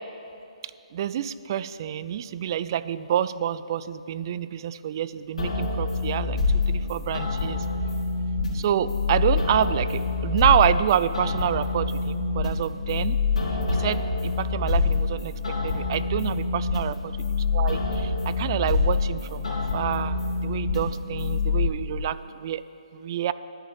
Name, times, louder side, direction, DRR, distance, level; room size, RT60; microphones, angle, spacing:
voice 1, 0.9-7.6 8.5-15.3 15.6-17.0 17.5-22.6 22.9-23.3, right 10 dB, 35° right, 15 dB, 0.3 m, -27 dB
sound 1, 5.4-21.7, left 4 dB, 75° left, 2.6 m, -26 dB
11.0 x 5.3 x 8.6 m, 2.7 s
hypercardioid pair, 145°, 4 cm